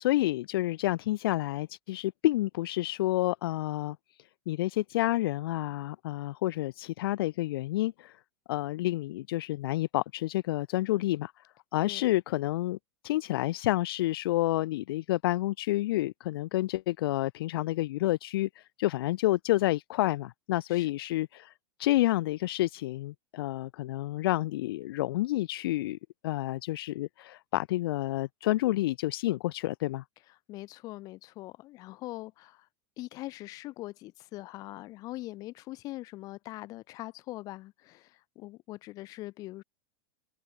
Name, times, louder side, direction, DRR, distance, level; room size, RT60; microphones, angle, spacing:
voice 1, 0.0-4.0 4.5-8.2 8.5-11.4 11.7-12.8 13.0-21.5 21.8-26.0 26.2-30.0, left 16 dB, 65° left, 0.4 m, -29 dB
voice 2, 30.5-32.7 33.0-39.6, left 18 dB, 30° left, 1.7 m, -42 dB
supercardioid pair, 180°, 13 cm